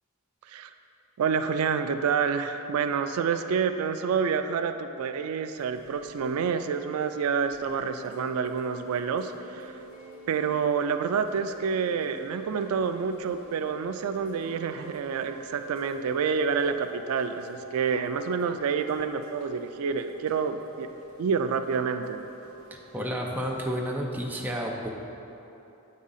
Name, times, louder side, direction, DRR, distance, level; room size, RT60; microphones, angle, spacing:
voice 1, 1.2-9.7 10.3-20.9 21.2-22.3, right 6 dB, 90° right, 9 dB, 0.3 m, -28 dB
Chime / Rain, 5.6-24.0, right 2 dB, 85° left, 1.4 m, -49 dB
sound 1, 7.6-16.7, right 4 dB, 25° right, 1.2 m, -48 dB
voice 2, 22.9-24.9, equal, 10° right, -1 dB, 0.6 m, -31 dB
7.9 x 3.7 x 5.5 m, 2.9 s
head